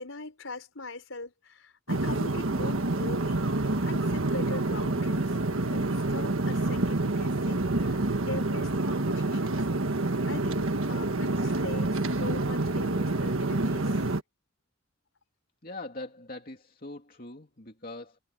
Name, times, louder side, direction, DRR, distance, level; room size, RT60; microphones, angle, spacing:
voice 1, 0.0-3.4 3.8-5.3 5.7-9.6 10.3-14.1, left 2 dB, 75° left, 4.6 m, -41 dB
sound 1, 1.9-14.2, right 2 dB, 80° right, 1.5 m, -28 dB
voice 2, 15.6-18.2, left 2 dB, 45° left, 2.8 m, -42 dB
head